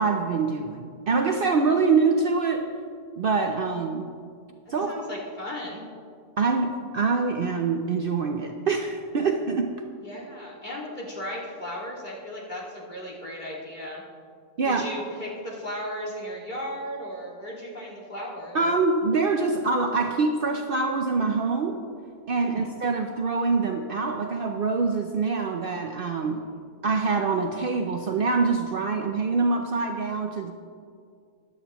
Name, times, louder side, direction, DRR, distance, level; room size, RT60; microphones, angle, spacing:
voice 1, 0.0-2.7 3.2-4.1 4.7-4.9 6.4-9.8 14.6-14.8 18.5-21.8 22.3-26.4 26.8-30.5, right 4 dB, 55° right, 4 dB, 0.7 m, -25 dB
voice 2, 4.7-5.9 10.0-14.0 14.6-18.6 22.4-22.8 26.2-26.5, equal, 40° left, -4 dB, 2.3 m, -36 dB
15.5 x 11.0 x 3.0 m, 2.3 s
omnidirectional pair, 1.3 m